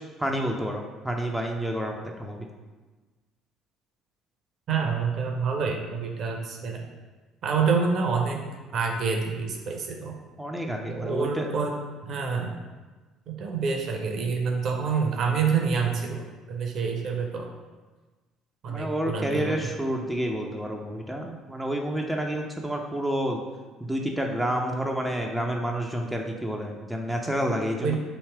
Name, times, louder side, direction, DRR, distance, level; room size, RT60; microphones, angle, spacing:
voice 1, 0.0-2.5 10.4-11.5 18.7-23.4 23.8-28.0, equal, 5° right, 1 dB, 0.5 m, -29 dB
voice 2, 4.7-6.9 7.4-8.4 8.7-10.2 10.9-11.8 12.0-12.5 13.3-17.5 18.6-19.7 27.8-28.0, right 5 dB, 50° right, 2 dB, 0.6 m, -27 dB
3.1 x 2.8 x 4.5 m, 1.3 s
figure-of-eight pair, 55°, 0 cm